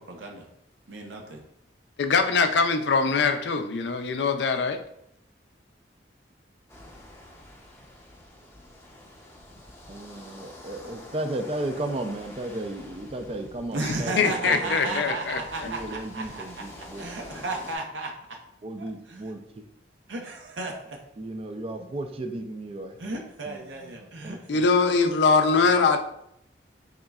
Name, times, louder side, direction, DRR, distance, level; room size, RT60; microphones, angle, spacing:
voice 1, 0.1-0.4 0.9-1.4 13.7-16.6 17.0-18.1 18.8-19.3 20.1-21.0 23.0-24.4 25.6-25.7, right 2 dB, 85° right, 1 dB, 0.7 m, -34 dB
voice 2, 2.0-4.8 13.8-15.4 24.5-26.0, left 4 dB, 70° left, 7 dB, 0.4 m, -22 dB
sound 1, 6.7-17.8, left 1 dB, 15° left, 0.6 m, -47 dB
voice 3, 9.9-15.1 15.6-17.4 18.6-19.4 21.2-23.0 23.5-24.0 24.2-24.4, right 1 dB, 30° right, 6 dB, 0.4 m, -34 dB
4.0 x 3.6 x 2.3 m, 0.76 s
head